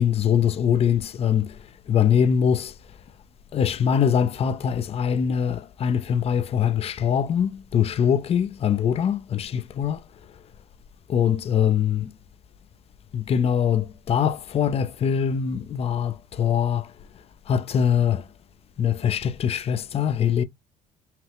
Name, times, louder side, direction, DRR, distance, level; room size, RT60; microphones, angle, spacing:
voice 1, 0.0-1.5 1.9-2.7 3.5-10.0 11.1-12.1 13.1-16.9 17.5-18.2 18.8-20.4, left 8 dB, 35° left, 0.4 m, -23 dB
5.6 x 2.0 x 3.3 m
cardioid pair, 110°, 17 cm